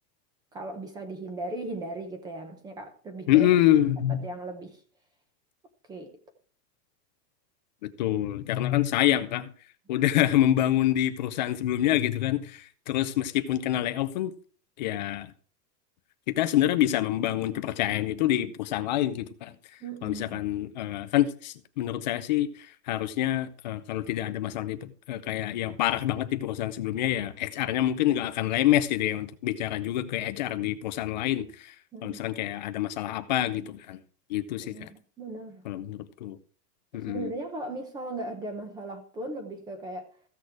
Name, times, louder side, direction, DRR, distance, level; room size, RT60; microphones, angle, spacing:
voice 1, 0.5-3.5 4.1-4.8 5.9-6.2 19.8-20.4 31.9-32.2 34.6-35.6 36.9-40.1, right 2 dB, 10° right, 0.9 m, -37 dB
voice 2, 3.3-4.2 7.8-9.5 9.9-14.3 14.8-15.3 16.3-19.6 20.0-22.5 22.9-31.7 32.0-34.0 34.3-34.9 35.7-36.4 36.9-37.3, left 13 dB, 30° left, 0.5 m, -26 dB
15.0 x 6.4 x 4.7 m
supercardioid pair, 175°, 49 cm